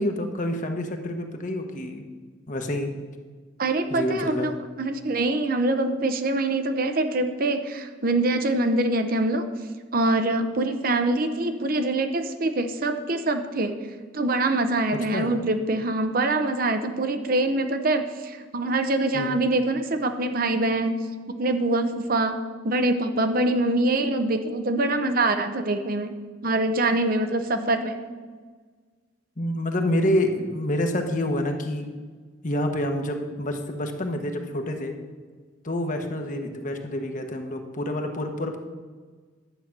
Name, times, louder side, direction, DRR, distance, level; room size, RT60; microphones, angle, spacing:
voice 1, 0.0-2.0 2.5-2.9 3.9-4.6 15.1-15.3 19.1-19.4 29.4-31.9 32.4-34.9 35.6-38.6, left 1 dB, 40° left, 5 dB, 1.1 m, -27 dB
voice 2, 3.6-4.5 4.8-9.5 9.9-13.8 14.1-20.9 21.4-22.4 22.6-28.0, right 2 dB, 50° right, 7 dB, 0.8 m, -24 dB
11.0 x 8.1 x 5.9 m, 1.5 s
head